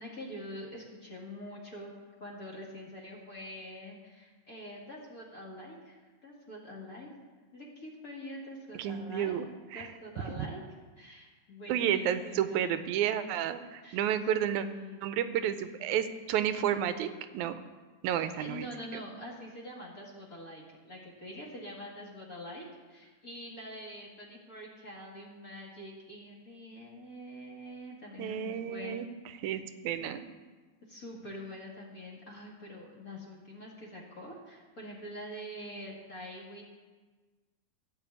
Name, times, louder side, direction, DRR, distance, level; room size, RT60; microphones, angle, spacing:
voice 1, 0.0-1.9 2.2-7.1 7.5-9.3 9.7-10.6 11.0-12.7 13.8-14.0 14.5-15.1 18.4-29.0 30.9-36.7, left 1 dB, 30° left, -3 dB, 2.2 m, -45 dB
voice 2, 8.7-9.4 9.7-9.9 11.7-14.7 15.0-17.5 18.0-18.7 18.9-19.0 28.2-29.1 29.4-30.2, right 10 dB, 85° right, 11 dB, 2.1 m, -31 dB
15.5 x 5.3 x 8.3 m, 1.4 s
omnidirectional pair, 3.3 m